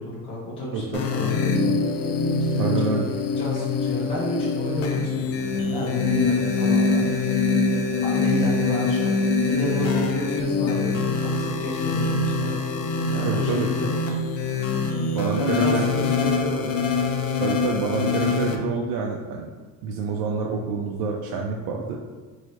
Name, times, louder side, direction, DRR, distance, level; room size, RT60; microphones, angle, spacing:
voice 1, 0.0-1.8 2.5-3.0 3.4-7.5 8.0-9.2 9.5-12.6 13.1-13.9 15.3-16.8, equal, 15° left, -8 dB, 0.8 m, -31 dB
sound 1, 0.9-18.6, left 4 dB, 45° left, 0.4 m, -24 dB
voice 2, 2.6-3.1 13.2-13.7 15.2-16.0 17.4-19.5 19.8-22.0, right 4 dB, 90° right, 0 dB, 0.5 m, -27 dB
3.2 x 2.7 x 4.3 m, 1.3 s
cardioid pair, 175°, 34 cm